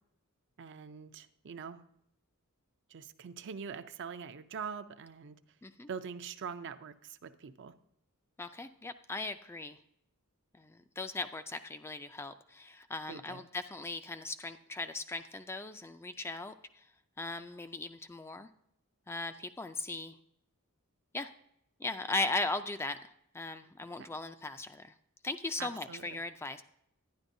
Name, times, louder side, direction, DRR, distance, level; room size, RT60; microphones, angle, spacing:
voice 1, 0.6-1.8 2.9-5.4 5.9-7.7 13.1-13.4 24.0-24.1 25.6-26.2, right 6 dB, 55° right, 11 dB, 0.5 m, -43 dB
voice 2, 8.4-9.8 10.6-16.8 17.2-18.5 19.1-20.2 21.1-21.3 21.8-24.9 25.2-26.6, left 2 dB, 10° left, 9 dB, 0.3 m, -38 dB
11.5 x 9.9 x 2.6 m, 0.74 s
head